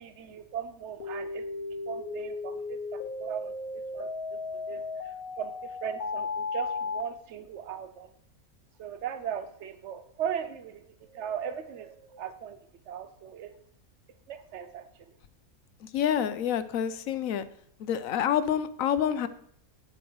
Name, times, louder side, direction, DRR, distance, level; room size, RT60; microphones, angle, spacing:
voice 1, 0.0-1.4 1.9-3.5 3.9-4.4 4.7-5.5 5.8-8.1 8.8-12.6 12.9-13.5 14.3-15.1, right 8 dB, 55° right, 10 dB, 1.1 m, -38 dB
sound 1, 1.0-7.0, left 4 dB, 90° left, 1.6 m, -35 dB
voice 2, 15.8-17.5 17.8-19.3, left 9 dB, 70° left, 13 dB, 1.0 m, -28 dB
8.8 x 7.9 x 4.7 m, 0.66 s
omnidirectional pair, 1.5 m